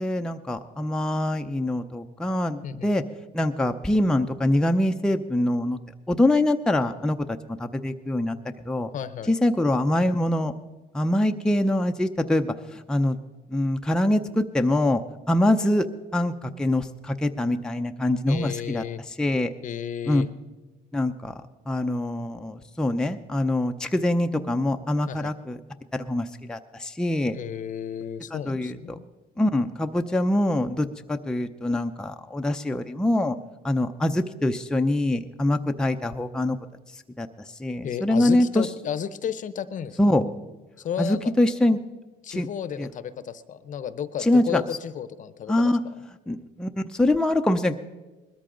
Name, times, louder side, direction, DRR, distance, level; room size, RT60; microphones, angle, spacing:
voice 1, 0.0-3.0 3.3-5.8 6.1-7.2 7.5-8.4 8.6-8.9 9.3-10.5 10.9-13.2 13.5-15.0 15.3-15.9 16.1-19.5 20.1-20.2 20.9-25.6 25.9-27.4 28.3-29.0 29.4-33.4 33.6-36.6 37.2-37.3 37.6-38.7 40.0-40.2 41.0-41.8 42.3-42.5 42.8-42.9 44.2-44.6 45.5-45.8 46.3-47.7, left 1 dB, 5° left, 5 dB, 0.6 m, -24 dB
voice 2, 8.9-9.3 18.3-19.0 19.6-20.3 25.1-25.3 27.3-29.0 37.8-40.0 40.8-41.3 42.2-45.7, left 8 dB, 50° left, 14 dB, 0.7 m, -33 dB
20.5 x 13.5 x 3.8 m, 1.2 s
cardioid pair, 110°, 17 cm